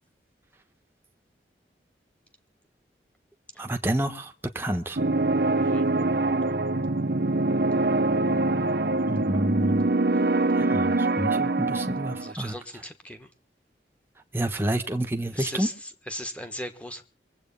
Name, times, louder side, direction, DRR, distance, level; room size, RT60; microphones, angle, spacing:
voice 1, 3.6-5.0 9.1-9.9 10.5-12.5 14.3-15.7, right 1 dB, 15° right, 4 dB, 1.1 m, -29 dB
sound 1, 5.0-12.3, right 2 dB, 60° right, 0.9 m, -24 dB
voice 2, 5.5-5.8 10.1-10.2 12.2-13.3 15.3-17.0, equal, 5° left, 7 dB, 1.4 m, -38 dB
23.5 x 8.2 x 5.4 m, 0.35 s
head